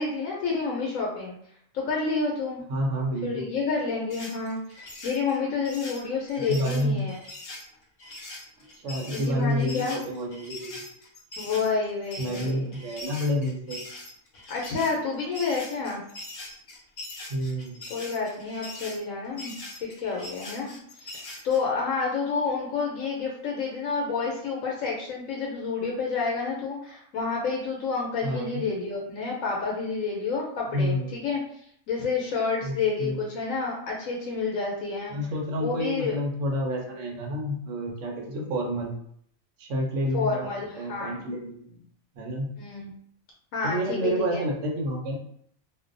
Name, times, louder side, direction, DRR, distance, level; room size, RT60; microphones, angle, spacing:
voice 1, 0.0-1.3 1.7-2.6 3.2-7.2 9.1-10.0 11.4-12.7 14.5-16.0 17.9-19.5 19.8-31.4 31.9-35.1 35.6-36.2 40.1-41.2 42.6-42.9 43.5-44.4, left 4 dB, 80° left, -2 dB, 1.0 m, -29 dB
voice 2, 2.7-3.5 6.5-7.0 8.8-10.8 12.2-13.8 17.3-17.8 28.2-28.6 30.7-31.2 32.6-33.2 35.1-39.0 39.6-41.8 42.2-42.5 43.6-45.2, equal, 70° right, 0 dB, 1.0 m, -29 dB
sound 1, 4.1-21.6, left 2 dB, 55° left, 0.8 m, -42 dB
2.6 x 2.1 x 2.5 m, 0.66 s
omnidirectional pair, 1.4 m